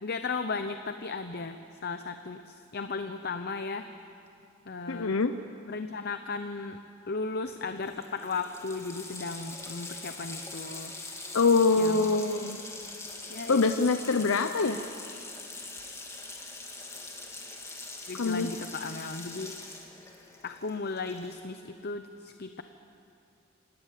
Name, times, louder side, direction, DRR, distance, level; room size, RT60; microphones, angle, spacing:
voice 1, 0.0-3.9 4.7-5.1 5.7-6.8 7.1-10.9 11.8-12.1 13.3-13.6 18.1-19.5 20.4-22.6, left 4 dB, 50° left, 8 dB, 0.8 m, -36 dB
voice 2, 4.9-5.3 11.3-12.6 13.5-14.8 18.2-18.5, left 4 dB, 90° left, 8 dB, 0.7 m, -24 dB
Water tap faucet, 7.5-7.6 7.8-21.6, left 3 dB, 15° left, 2.6 m, -43 dB
27.0 x 19.0 x 7.6 m, 2.5 s
head